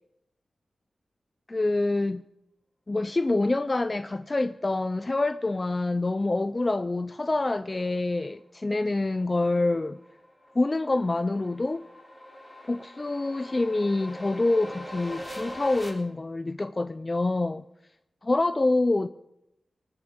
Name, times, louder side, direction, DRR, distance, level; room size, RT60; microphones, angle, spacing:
voice 1, 1.5-2.2 2.9-10.0 10.6-11.8 12.6-17.6 18.2-19.1, left 2 dB, 30° left, 0.5 m, -26 dB
sound 1, 9.9-15.9, equal, 15° left, 3.9 m, -42 dB
19.0 x 8.6 x 8.0 m
cardioid pair, 65°, 0 cm